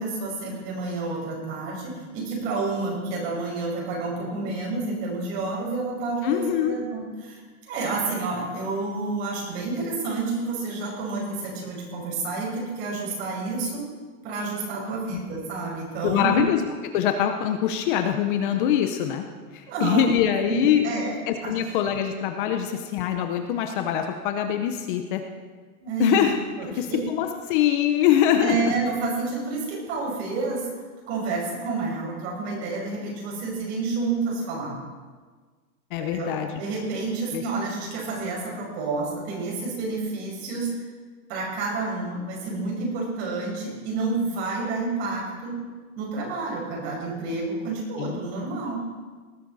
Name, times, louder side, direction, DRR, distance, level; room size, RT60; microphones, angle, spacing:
voice 1, 0.0-7.4 7.7-13.8 14.2-16.4 19.7-20.1 20.5-21.2 21.4-21.5 25.8-26.3 26.6-27.0 28.4-30.7 31.1-34.8 36.0-40.7 41.3-45.6 46.0-48.8, right 3 dB, 45° right, -2 dB, 5.6 m, -29 dB
voice 2, 6.2-6.8 16.0-16.6 16.9-19.2 19.5-20.9 21.3-25.2 26.0-28.7 35.9-36.6 37.3-37.4 48.0-48.2, left 10 dB, 35° left, 6 dB, 0.8 m, -24 dB
19.5 x 11.0 x 4.1 m, 1.4 s
supercardioid pair, 165°, 44 cm